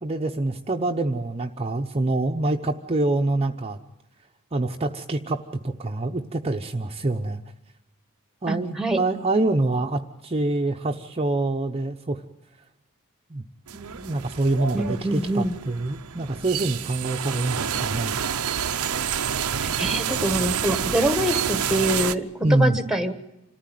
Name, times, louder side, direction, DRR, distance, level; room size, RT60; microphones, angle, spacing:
voice 1, 0.0-3.8 4.5-7.4 8.4-12.2 13.3-13.4 13.7-18.2 22.4-22.8, right 2 dB, 30° right, 3 dB, 0.9 m, -25 dB
voice 2, 8.5-9.0 14.7-15.5 19.6-23.1, right 1 dB, 5° right, 9 dB, 1.4 m, -25 dB
sound 1, 13.7-22.2, right 8 dB, 90° right, 0.8 m, -28 dB
27.0 x 14.5 x 9.2 m, 0.90 s
head